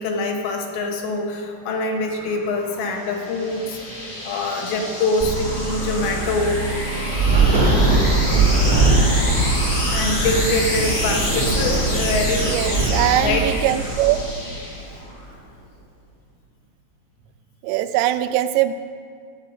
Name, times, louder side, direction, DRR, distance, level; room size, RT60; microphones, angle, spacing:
voice 1, 0.0-3.8 4.2-6.6 9.9-12.9 13.2-13.6, left 2 dB, 80° left, 2 dB, 3.3 m, -24 dB
sound 1, 1.7-15.2, left 1 dB, 45° left, 1.0 m, -28 dB
sound 2, 5.2-13.2, right 3 dB, 15° left, 0.6 m, -28 dB
Thunder / Rain, 7.1-14.7, right 3 dB, 70° right, 0.8 m, -21 dB
voice 2, 12.4-14.2 17.6-18.7, right 14 dB, 85° right, 11 dB, 2.8 m, -21 dB
13.5 x 8.2 x 5.6 m, 2.2 s
omnidirectional pair, 5.1 m